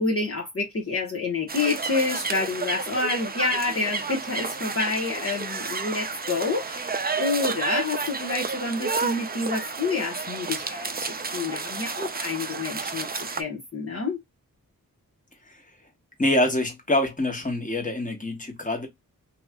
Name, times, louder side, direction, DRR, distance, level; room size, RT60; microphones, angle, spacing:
voice 1, 0.0-14.2, left 3 dB, 40° left, 1.2 m, -28 dB
sound 1, 1.5-13.4, right 4 dB, 25° right, 0.6 m, -31 dB
voice 2, 16.2-18.9, left 1 dB, 25° left, 1.4 m, -25 dB
3.0 x 2.9 x 2.3 m
cardioid pair, 55°, 34 cm